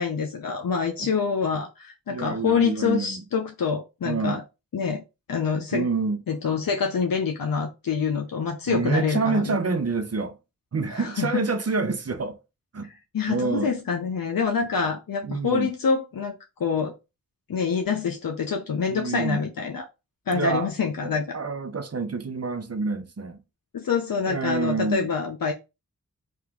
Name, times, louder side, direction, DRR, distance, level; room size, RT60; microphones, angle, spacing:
voice 1, 0.0-4.4 4.7-5.0 5.3-5.9 6.3-9.6 10.9-11.4 13.1-16.9 17.5-19.8 20.3-21.4 23.7-25.5, left 6 dB, 70° left, 0.6 m, -26 dB
voice 2, 2.1-3.2 4.0-4.4 5.7-6.2 8.7-10.4 10.7-12.4 12.7-12.9 13.3-13.7 15.2-15.7 18.9-19.4 20.3-20.7 21.0-23.4 24.3-25.1, right 4 dB, 45° right, 0.7 m, -27 dB
2.9 x 2.5 x 3.5 m
cardioid pair, 45°, 36 cm